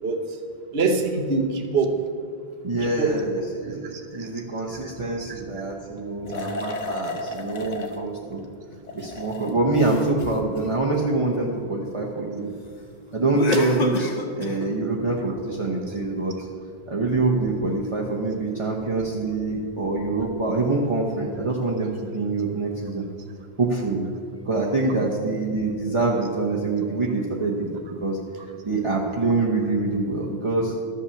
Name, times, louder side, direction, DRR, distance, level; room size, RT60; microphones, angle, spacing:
voice 1, 0.7-1.9 2.8-3.1 3.9-4.3 5.2-5.3 6.2-6.4, right 3 dB, 65° right, 4 dB, 1.2 m, -24 dB
voice 2, 2.6-8.4 8.9-12.5 13.1-16.4 16.9-23.0 23.6-24.1 24.4-28.2 28.6-30.7, right 3 dB, 30° right, -4 dB, 1.0 m, -25 dB
sound 1, 6.2-8.0 8.7-11.4 13.3-14.7, left 2 dB, 40° left, 0.9 m, -30 dB
12.5 x 5.7 x 7.1 m, 2.2 s
omnidirectional pair, 1.1 m